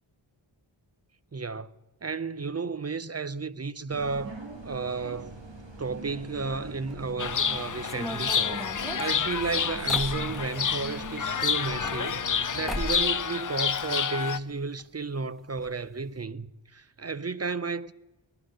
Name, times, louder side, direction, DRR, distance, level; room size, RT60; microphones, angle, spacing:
voice 1, 1.3-1.7 2.0-5.4 5.8-8.6 9.0-17.9, right 4 dB, 30° right, 0.5 m, -33 dB
sound 1, 3.9-12.8, right 2 dB, 60° right, 2.1 m, -43 dB
Chirp tweet, 7.2-14.4, left 7 dB, 40° left, 0.5 m, -29 dB
sound 2, 7.8-10.8 11.6-12.4 12.7-13.1 13.4-14.2 14.5-14.6 14.8-14.9 15.6-15.7 16.0-16.2, left 1 dB, ahead, 1.1 m, -37 dB
18.5 x 11.5 x 6.4 m
wide cardioid pair, 50°, 49 cm